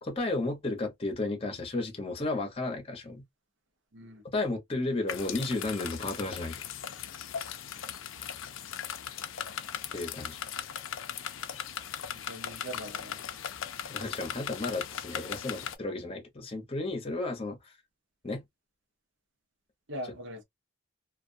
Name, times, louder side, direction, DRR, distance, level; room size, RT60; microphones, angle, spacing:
voice 1, 0.0-3.2 4.3-6.6 9.9-10.4 13.9-17.6 18.2-18.4, left 2 dB, 30° left, 0.8 m, -33 dB
voice 2, 3.9-4.2 12.1-13.2 19.9-20.4, equal, 65° right, 0.8 m, -41 dB
sound 1, 5.1-15.8, left 8 dB, 80° left, 0.5 m, -38 dB
2.3 x 2.3 x 2.5 m
head